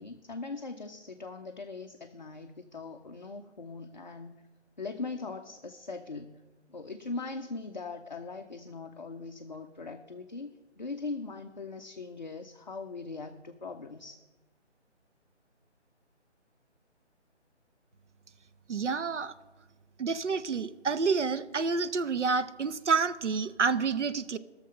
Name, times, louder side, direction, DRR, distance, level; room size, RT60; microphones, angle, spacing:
voice 1, 0.0-4.4 4.8-6.4 6.7-14.2, left 3 dB, 40° left, 5 dB, 0.5 m, -40 dB
voice 2, 18.7-19.3 20.0-24.4, right 5 dB, 80° right, 13 dB, 0.8 m, -29 dB
16.0 x 6.6 x 5.3 m, 1.2 s
figure-of-eight pair, 165°, 35 cm